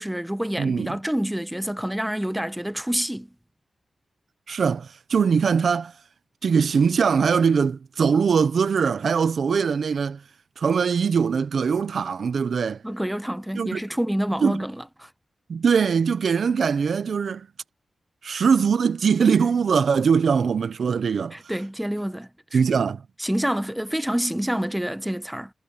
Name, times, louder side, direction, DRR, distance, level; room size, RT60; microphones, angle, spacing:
voice 1, 0.0-3.3 12.8-15.1 21.3-22.6 23.2-25.5, equal, 5° right, 1.3 m, -27 dB
voice 2, 0.6-1.0 4.5-5.9 6.4-10.2 10.6-12.8 13.5-13.8 14.4-14.6 15.5-17.5 18.2-21.3 22.5-23.0, right 6 dB, 75° right, 0.8 m, -21 dB
cardioid pair, 55°, 0 cm